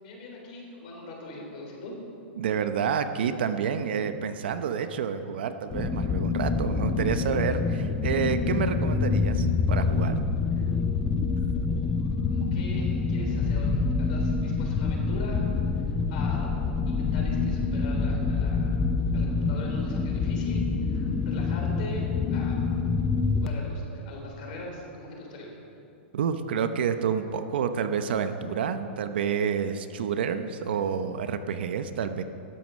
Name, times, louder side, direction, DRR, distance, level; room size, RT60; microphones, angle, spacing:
voice 1, 0.0-2.0 11.7-16.5 16.9-18.8 19.1-22.6 23.4-25.6, left 1 dB, 40° left, -1 dB, 3.5 m, -41 dB
voice 2, 2.4-10.2 26.1-32.2, right 7 dB, 55° right, 9 dB, 0.7 m, -29 dB
sound 1, 5.7-23.5, left 4 dB, 10° left, 0.4 m, -26 dB
13.0 x 11.0 x 6.2 m, 2.6 s
supercardioid pair, 175°, 6 cm